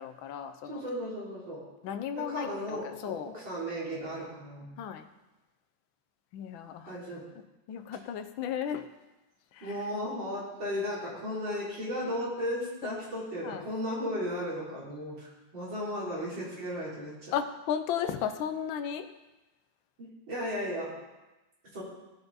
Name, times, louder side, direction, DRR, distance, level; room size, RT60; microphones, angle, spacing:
voice 1, 0.0-0.8 1.8-3.3 4.8-5.1 6.3-7.0 7.7-8.9 9.5-9.7 12.8-13.1 13.4-13.7 17.3-19.1, left 8 dB, 90° left, 8 dB, 1.5 m, -35 dB
voice 2, 0.7-1.6 2.1-4.7 6.9-7.2 9.6-17.3 20.0-20.9 21.7-21.8, equal, 75° right, -7 dB, 4.3 m, -35 dB
17.0 x 5.8 x 4.0 m, 1.1 s
omnidirectional pair, 2.1 m